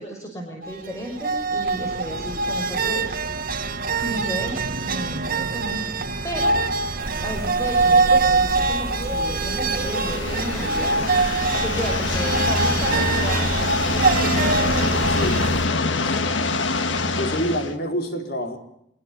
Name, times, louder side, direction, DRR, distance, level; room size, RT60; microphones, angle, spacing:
voice 1, 0.0-3.1 4.0-6.6 7.2-14.6 16.8-17.5, equal, 15° left, 1 dB, 6.0 m, -33 dB
sound 1, 0.6-15.5, right 3 dB, 55° right, 2.1 m, -24 dB
sound 2, 7.0-15.7, right 1 dB, 15° right, 4.9 m, -35 dB
sound 3, 9.7-17.7, left 3 dB, 85° left, 1.9 m, -24 dB
voice 2, 15.1-15.6 15.9-16.5 17.1-18.6, equal, 60° left, 4 dB, 4.5 m, -28 dB
26.0 x 22.0 x 8.5 m, 0.75 s
head